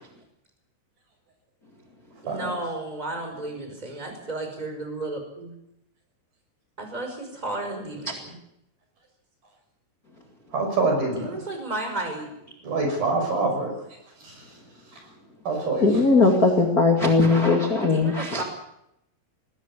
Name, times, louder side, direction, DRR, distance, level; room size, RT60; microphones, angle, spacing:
voice 1, 2.2-5.5 6.8-8.3 11.1-12.3 17.8-18.4, right 2 dB, 10° right, 4 dB, 4.9 m, -33 dB
voice 2, 10.5-11.4 12.6-13.7 14.2-14.3 15.5-16.0, right 3 dB, 50° right, 3 dB, 7.6 m, -25 dB
voice 3, 15.8-18.4, left 3 dB, 40° left, 2 dB, 1.3 m, -19 dB
21.0 x 17.5 x 8.4 m, 0.80 s
omnidirectional pair, 5.7 m